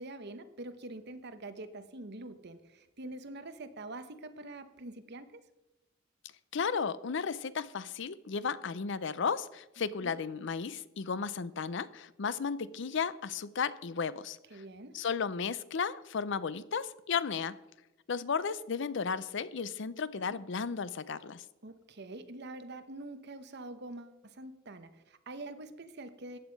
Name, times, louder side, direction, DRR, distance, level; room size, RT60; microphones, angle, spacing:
voice 1, 0.0-5.4 10.0-10.1 14.5-15.0 20.3-20.4 21.6-26.4, right 2 dB, 60° right, 1.0 m, -45 dB
voice 2, 6.5-14.6 14.9-17.6 18.1-21.5, left 5 dB, 65° left, 0.6 m, -34 dB
14.0 x 9.0 x 5.3 m
head